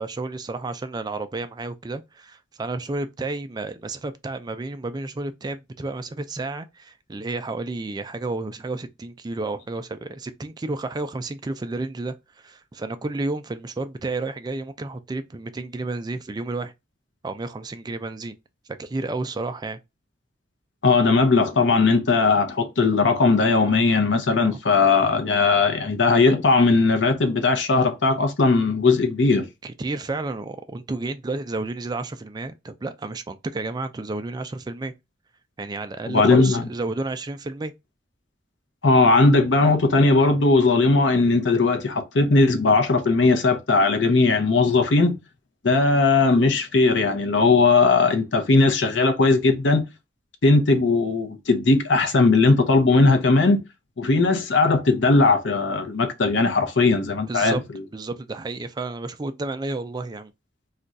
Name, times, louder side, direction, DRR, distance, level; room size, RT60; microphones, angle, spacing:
voice 1, 0.0-16.7 17.2-18.4 18.8-19.8 24.4-24.6 29.6-34.9 35.6-37.7 57.3-57.6 57.9-60.3, right 2 dB, 20° right, 0.3 m, -31 dB
voice 2, 20.8-29.5 36.1-36.6 38.8-45.2 45.6-49.8 50.4-53.6 54.0-57.6, left 3 dB, 65° left, 0.6 m, -18 dB
2.4 x 2.2 x 3.9 m
head